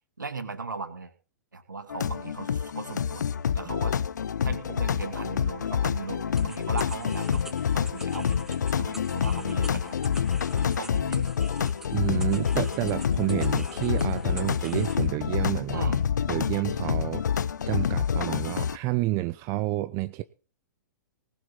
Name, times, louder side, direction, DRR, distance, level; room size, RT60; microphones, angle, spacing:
voice 1, 0.2-1.1 1.5-3.3 3.5-4.0 4.4-9.9 10.5-11.3 15.7-16.0, right 4 dB, 80° right, 8 dB, 2.6 m, -37 dB
sound 1, 1.9-18.8, left 7 dB, 65° left, 0.6 m, -27 dB
sound 2, 6.4-15.1, right 2 dB, 5° right, 0.9 m, -46 dB
voice 2, 11.9-15.9 16.3-17.2 17.7-20.2, right 18 dB, 30° right, 12 dB, 0.7 m, -29 dB
19.0 x 7.5 x 5.5 m, 0.35 s
figure-of-eight pair, 110°, 10 cm